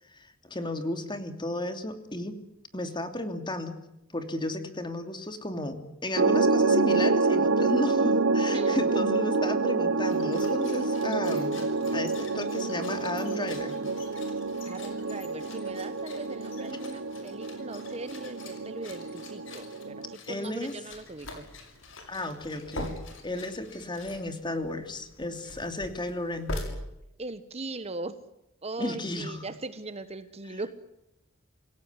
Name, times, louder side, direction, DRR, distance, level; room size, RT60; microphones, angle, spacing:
voice 1, 0.1-2.4 2.7-3.8 4.1-11.6 11.9-13.7 20.3-20.8 22.1-22.9 23.2-26.6 28.8-29.5 30.5-30.6, left 1 dB, 25° left, 8 dB, 2.9 m, -33 dB
sound 1, 6.1-20.1, right 3 dB, 70° right, 1.0 m, -27 dB
sound 2, 10.0-24.6, left 6 dB, 70° left, 5.9 m, -51 dB
voice 2, 14.6-21.4 27.2-28.1 28.6-30.8, right 3 dB, 30° right, 12 dB, 1.2 m, -39 dB
sound 3, 20.9-26.6, left 1 dB, 85° left, 7.0 m, -41 dB
27.5 x 17.0 x 9.9 m, 0.86 s
head